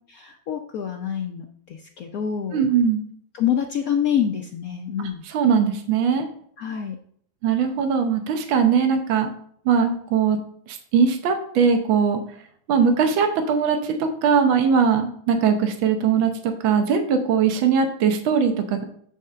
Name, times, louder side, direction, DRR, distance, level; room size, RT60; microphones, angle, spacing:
voice 1, 0.1-2.6 3.3-5.2 6.6-7.0, left 8 dB, 90° left, 3 dB, 0.7 m, -26 dB
voice 2, 2.5-3.0 5.0-6.3 7.4-9.3 9.7-10.4 10.7-12.2 12.7-18.8, right 6 dB, 70° right, 5 dB, 1.7 m, -20 dB
8.1 x 3.6 x 6.6 m, 0.63 s
omnidirectional pair, 2.3 m